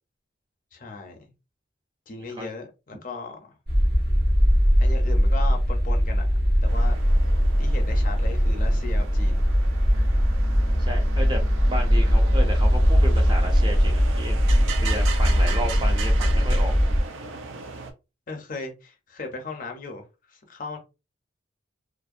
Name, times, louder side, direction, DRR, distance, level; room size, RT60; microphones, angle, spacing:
voice 1, 0.7-1.3 2.1-3.6 4.8-6.3 6.6-7.0 7.6-9.4 18.3-20.8, left 3 dB, 45° left, 0.5 m, -37 dB
sound 1, 3.7-17.0, equal, 50° right, 0.8 m, -20 dB
sound 2, 6.7-17.9, right 4 dB, 80° right, 0.5 m, -38 dB
voice 2, 10.8-14.4 14.8-16.7, equal, 25° right, 0.5 m, -33 dB
2.5 x 2.0 x 2.4 m
head